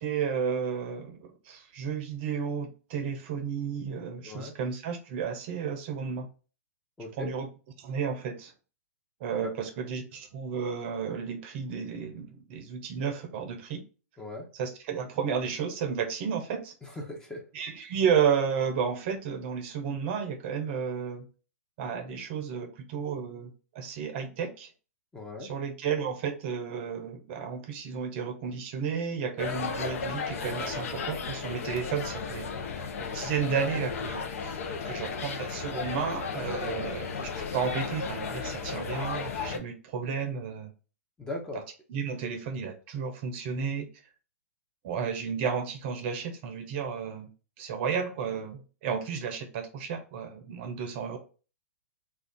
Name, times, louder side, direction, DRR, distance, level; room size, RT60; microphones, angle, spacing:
voice 1, 0.0-6.3 7.2-7.5 7.8-8.5 9.2-13.8 14.5-16.7 17.5-21.2 21.8-24.7 25.4-32.5 33.0-34.6 34.8-40.7 41.9-43.9 44.8-47.3 47.6-51.2, right 6 dB, 45° right, 6 dB, 0.6 m, -32 dB
voice 2, 7.0-7.3 9.4-9.5 14.2-14.5 16.8-17.4 25.1-25.5 36.6-36.9 41.2-41.6, left 2 dB, 5° left, 0 dB, 0.7 m, -38 dB
sound 1, 29.4-39.6, left 5 dB, 65° left, 0.6 m, -34 dB
2.4 x 2.3 x 3.5 m, 0.35 s
hypercardioid pair, 125°, 8 cm